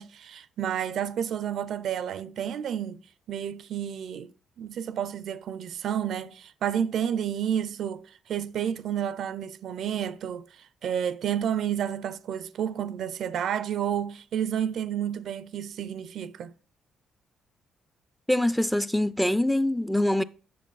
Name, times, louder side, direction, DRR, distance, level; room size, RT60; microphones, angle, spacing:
voice 1, 0.0-3.0 3.3-4.3 4.6-16.5, right 9 dB, 70° right, 0.4 m, -30 dB
voice 2, 18.3-20.2, left 1 dB, 5° left, 0.4 m, -24 dB
7.6 x 6.4 x 3.9 m
cardioid pair, 90°, 0 cm